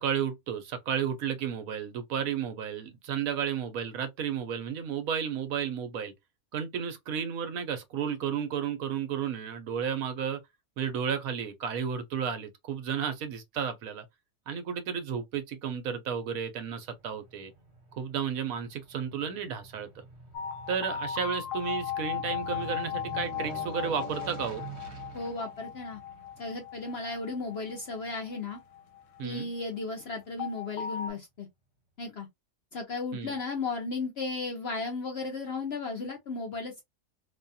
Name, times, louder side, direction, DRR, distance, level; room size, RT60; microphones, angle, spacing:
voice 1, 0.0-6.1 6.5-10.4 10.8-14.0 14.5-17.5 18.0-20.0 20.7-24.6 29.2-29.5 33.1-33.4, right 7 dB, 70° right, 1.0 m, -32 dB
Aircraft, 16.6-29.2 29.6-29.7, right 3 dB, 50° right, 1.1 m, -47 dB
sound 1, 20.3-29.4 30.4-31.1, left 9 dB, 80° left, 1.1 m, -37 dB
voice 2, 25.1-26.0 26.4-28.6 29.2-31.5 32.0-32.3 32.7-36.8, left 3 dB, 60° left, 0.7 m, -35 dB
2.7 x 2.3 x 2.6 m
omnidirectional pair, 1.6 m